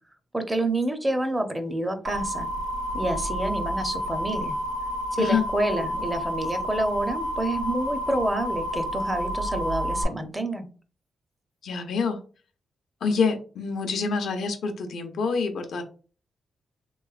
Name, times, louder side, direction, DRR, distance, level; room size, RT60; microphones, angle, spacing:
voice 1, 0.3-2.5 2.9-4.6 5.1-10.7, right 1 dB, 15° right, 7 dB, 0.6 m, -28 dB
sound 1, 2.1-10.0, equal, 75° right, 1.3 m, -30 dB
voice 2, 11.6-12.2 13.0-15.8, left 5 dB, 80° left, 6 dB, 0.6 m, -26 dB
3.1 x 3.0 x 2.3 m, 0.38 s
cardioid pair, 80°, 0 cm